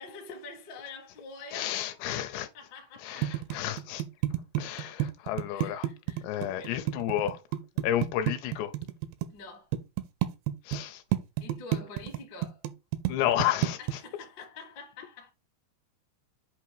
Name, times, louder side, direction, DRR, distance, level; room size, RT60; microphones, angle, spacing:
voice 1, 0.0-1.8 2.5-3.5 5.5-6.9 9.3-9.7 11.4-12.6 13.8-15.3, left 3 dB, 50° left, 1.3 m, -46 dB
voice 2, 1.5-2.5 3.0-4.0 4.6-5.9 6.2-7.4 7.8-8.7 10.7-11.0 13.1-14.0, left 12 dB, 80° left, 2.8 m, -31 dB
sound 1, 3.2-9.3 9.7-10.8 11.1-13.9, right 13 dB, 85° right, 2.8 m, -30 dB
8.1 x 2.9 x 4.6 m
omnidirectional pair, 5.1 m